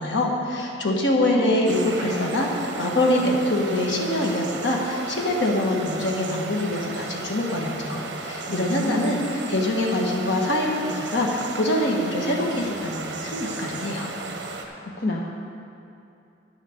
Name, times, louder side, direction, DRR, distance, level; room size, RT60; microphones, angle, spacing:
voice 1, 0.0-9.2 9.5-14.1, left 1 dB, 80° left, -1 dB, 1.6 m, -24 dB
sound 1, 1.7-14.7, right 3 dB, 70° right, 1.0 m, -35 dB
voice 2, 8.4-9.2 14.8-15.2, left 2 dB, 55° left, -1 dB, 0.7 m, -29 dB
10.5 x 6.6 x 6.6 m, 2.6 s
head